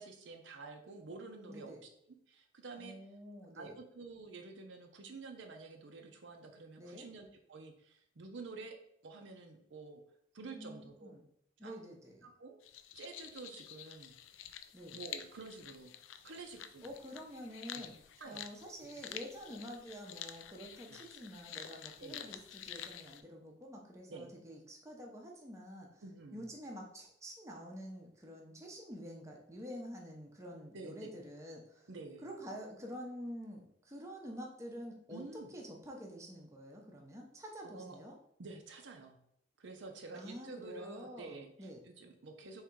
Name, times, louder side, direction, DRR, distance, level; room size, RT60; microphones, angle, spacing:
voice 1, 0.0-1.7 2.1-3.0 3.5-8.8 9.0-10.0 10.3-11.1 11.6-11.8 12.2-12.6 12.9-14.2 14.9-15.9 16.2-16.8 17.7-17.8 18.2-18.4 20.9-21.0 22.0-22.2 24.1-24.3 26.0-26.5 30.7-31.1 31.9-32.3 35.1-35.5 37.6-38.0 38.4-39.2 39.6-42.6, right 3 dB, 65° right, 3 dB, 0.6 m, -49 dB
voice 2, 1.5-1.8 2.8-3.7 6.8-7.1 10.4-11.2 11.6-12.3 14.7-15.0 16.8-17.9 18.2-26.0 26.3-31.9 32.2-35.2 35.5-38.2 40.1-41.8, equal, 15° right, -1 dB, 0.7 m, -48 dB
sound 1, 12.6-23.2, left 10 dB, 75° left, 0.4 m, -49 dB
3.6 x 3.2 x 4.5 m, 0.71 s
head